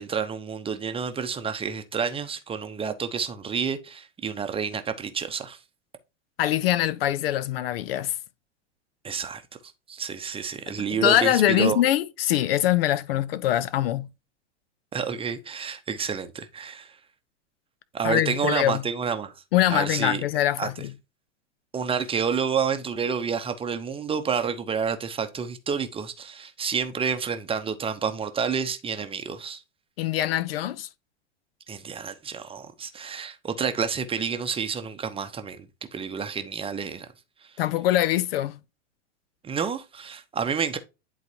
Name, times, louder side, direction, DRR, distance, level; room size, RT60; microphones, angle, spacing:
voice 1, 0.0-5.6 9.0-9.4 9.9-11.8 14.9-16.9 17.9-19.3 19.7-20.2 20.6-20.7 21.7-29.6 31.7-37.1 39.4-40.8, right 6 dB, 15° right, 0.8 m, -29 dB
voice 2, 6.4-8.1 10.9-14.1 18.0-18.8 19.5-20.9 30.0-30.9 37.6-38.6, left 13 dB, 55° left, 0.7 m, -23 dB
10.5 x 4.0 x 2.9 m
figure-of-eight pair, 95°, 35 cm